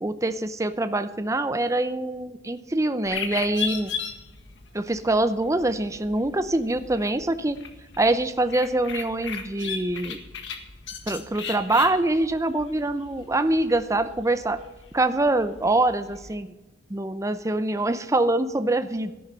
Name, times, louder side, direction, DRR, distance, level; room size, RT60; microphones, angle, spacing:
voice 1, 0.0-3.9 4.7-7.6 8.0-10.2 11.1-14.6 14.9-16.5 16.9-19.1, right 2 dB, 15° right, 11 dB, 0.6 m, -24 dB
sound 1, 3.0-16.3, left 6 dB, 70° left, 1.7 m, -37 dB
14.0 x 11.0 x 5.6 m, 1.1 s
head